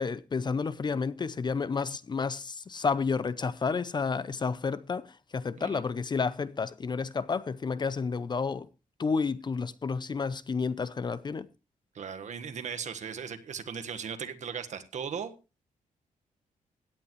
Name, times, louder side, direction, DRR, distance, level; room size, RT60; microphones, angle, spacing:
voice 1, 0.0-5.1 5.3-8.7 9.0-11.5, left 5 dB, 30° left, 0.6 m, -30 dB
voice 2, 11.9-15.3, right 7 dB, 55° right, 1.4 m, -37 dB
17.0 x 9.8 x 3.1 m
wide cardioid pair, 135°, 14 cm